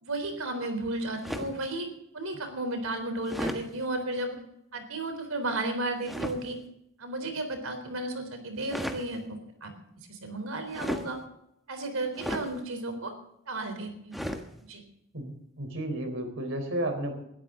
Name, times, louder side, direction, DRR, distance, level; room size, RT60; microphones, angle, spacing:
voice 1, 0.0-1.9 2.1-4.4 4.7-6.6 7.0-9.7 10.1-11.2 11.7-13.1 13.5-14.3 14.7-14.8, right 2 dB, 80° right, 7 dB, 3.8 m, -33 dB
sound 1, 1.2-1.6 3.3-3.6 6.0-6.4 8.6-9.1 10.7-11.1 12.2-12.5 14.1-14.5, equal, ahead, 1.4 m, -34 dB
voice 2, 15.1-17.1, right 1 dB, 65° right, 6 dB, 4.1 m, -32 dB
21.0 x 13.0 x 3.9 m, 0.79 s
head